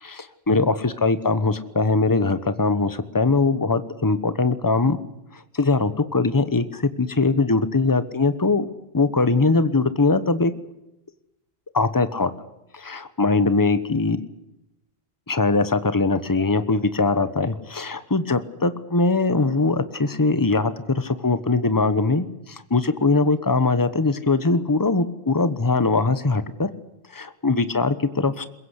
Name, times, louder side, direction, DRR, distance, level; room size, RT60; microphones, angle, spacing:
voice 1, 0.0-5.0 5.3-8.7 8.9-10.5 11.7-12.3 12.7-14.2 15.3-26.7 27.1-28.5, left 3 dB, 20° left, 12 dB, 1.1 m, -21 dB
22.5 x 22.0 x 8.2 m, 0.88 s
omnidirectional pair, 1.0 m